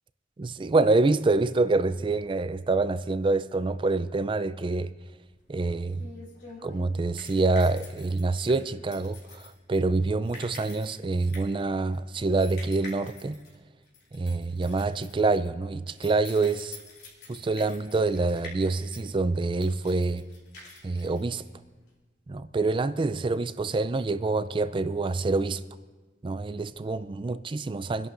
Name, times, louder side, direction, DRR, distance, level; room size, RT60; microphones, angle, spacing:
voice 1, 0.4-4.9 5.5-6.0 6.6-13.4 14.1-16.8 17.3-20.2 20.8-21.4 22.3-25.6 26.2-28.1, right 3 dB, 30° right, 0.4 m, -26 dB
sound 1, 5.2-21.9, left 3 dB, 60° left, 3.4 m, -48 dB
28.0 x 11.0 x 2.5 m
head